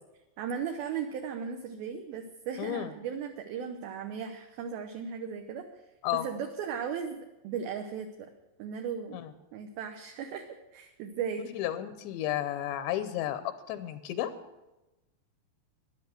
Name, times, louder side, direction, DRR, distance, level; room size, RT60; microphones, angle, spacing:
voice 1, 0.4-5.7 6.2-8.3 8.6-9.2 9.5-11.5, right 7 dB, 75° right, 5 dB, 2.5 m, -36 dB
voice 2, 2.6-2.9 6.0-6.3 9.1-9.3 11.5-14.3, left 12 dB, 85° left, 10 dB, 3.1 m, -32 dB
13.0 x 11.0 x 7.7 m, 1.0 s
omnidirectional pair, 5.0 m